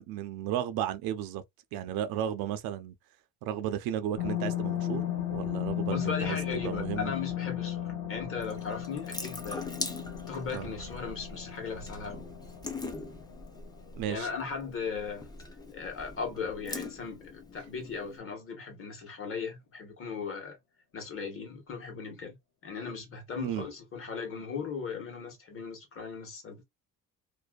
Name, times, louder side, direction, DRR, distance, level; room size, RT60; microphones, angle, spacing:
voice 1, 0.0-1.4 1.7-2.9 3.4-6.4 6.6-7.1 10.5-10.7 13.9-14.3 23.4-23.7, right 10 dB, 75° right, 0.5 m, -34 dB
sound 1, 4.2-15.0 15.4-15.5, left 11 dB, 60° left, 1.3 m, -36 dB
voice 2, 5.9-9.7 10.3-12.2 14.1-15.3 15.7-20.6 20.9-22.4 22.6-26.6, left 5 dB, 35° left, 1.2 m, -37 dB
Water tap faucet / Sink (filling or washing) / Drip, 8.4-18.2, left 2 dB, 10° left, 0.5 m, -42 dB
2.6 x 2.1 x 2.3 m
cardioid pair, 130°, 36 cm